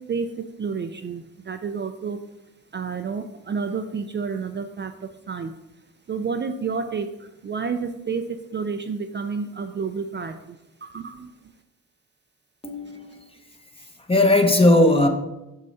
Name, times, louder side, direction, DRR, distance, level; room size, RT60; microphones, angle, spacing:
voice 1, 0.6-1.2 1.5-2.2 2.7-4.9 5.3-5.5 6.1-7.1 7.4-8.2 8.5-10.3 10.8-11.1, right 5 dB, 35° right, 7 dB, 0.5 m, -29 dB
voice 2, 12.6-13.2 14.1-15.1, left 1 dB, 15° left, 5 dB, 1.0 m, -17 dB
6.3 x 5.5 x 4.2 m, 0.94 s
cardioid pair, 75°, 34 cm